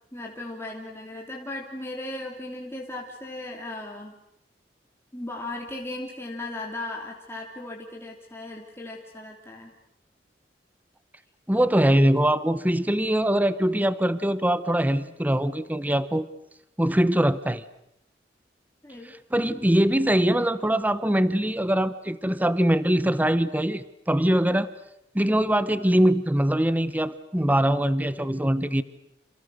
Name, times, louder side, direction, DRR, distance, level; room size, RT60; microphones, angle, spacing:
voice 1, 0.1-4.1 5.1-9.7 18.8-19.2, left 2 dB, 15° left, -1 dB, 3.2 m, -37 dB
voice 2, 11.5-16.3 16.8-17.6 19.3-24.7 25.1-28.8, right 1 dB, 10° right, 14 dB, 1.0 m, -22 dB
28.5 x 28.0 x 6.5 m, 0.77 s
head